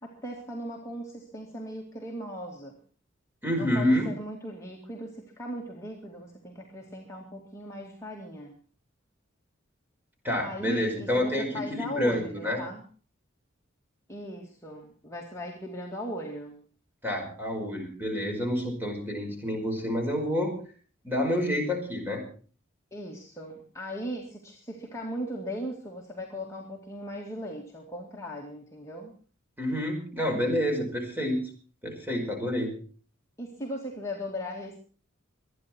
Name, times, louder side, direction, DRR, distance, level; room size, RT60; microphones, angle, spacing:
voice 1, 0.0-2.8 3.6-8.5 10.4-12.8 14.1-16.6 22.9-29.1 33.4-34.8, equal, 15° left, -2 dB, 2.3 m, -38 dB
voice 2, 3.4-4.1 10.2-12.6 17.0-20.5 21.0-22.2 29.6-31.4 31.8-32.7, left 1 dB, 10° right, 2 dB, 5.2 m, -28 dB
25.0 x 10.0 x 4.5 m, 0.40 s
head